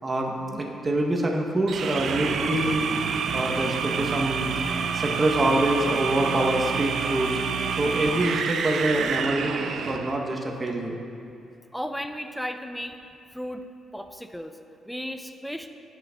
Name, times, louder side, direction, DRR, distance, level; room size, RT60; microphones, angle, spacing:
voice 1, 0.0-2.9 3.3-7.3 7.8-11.0, right 1 dB, 25° right, 0 dB, 0.7 m, -26 dB
sound 1, 1.7-10.2, right 6 dB, 65° right, 0.3 m, -28 dB
voice 2, 11.7-13.0 13.3-13.7 13.9-14.6 14.8-15.7, equal, ahead, 7 dB, 0.4 m, -34 dB
9.2 x 6.5 x 2.2 m, 2.6 s
cardioid pair, 90°, 0 cm